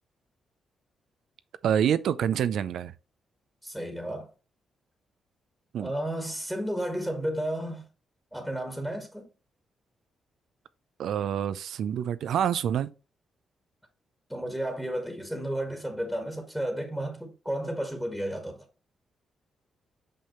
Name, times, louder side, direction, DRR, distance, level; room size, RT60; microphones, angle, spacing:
voice 1, 1.6-2.9 5.7-5.9 11.0-12.9, right 9 dB, 75° right, 0.5 m, -27 dB
voice 2, 3.6-4.3 5.8-7.8 8.3-9.3 14.3-18.6, right 1 dB, ahead, 1.7 m, -32 dB
5.7 x 5.4 x 3.1 m
supercardioid pair, 60°, 0 cm